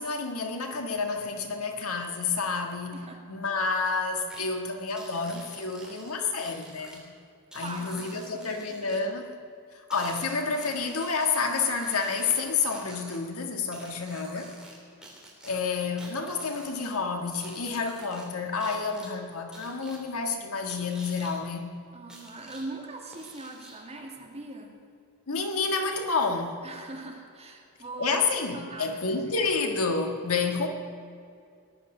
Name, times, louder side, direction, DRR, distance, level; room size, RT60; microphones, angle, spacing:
voice 1, 0.0-3.0 3.3-7.0 7.5-9.4 9.9-14.5 15.4-21.7 25.3-26.6 28.0-30.7, left 4 dB, 70° left, 4 dB, 1.7 m, -29 dB
sound 1, 4.3-4.5 5.0-7.0 7.5-9.0 9.9-13.2 13.7-14.8 15.0-16.8 17.3-18.3 18.6-19.1 19.5-20.0 20.7-21.4 22.1-22.7 23.1-23.9, right 1 dB, 5° right, 3.1 m, -48 dB
voice 2, 7.6-9.0 21.9-24.7 26.6-28.3 28.5-29.0 29.3-29.4, right 2 dB, 30° right, 1 dB, 2.1 m, -41 dB
18.0 x 11.5 x 6.5 m, 2.3 s
head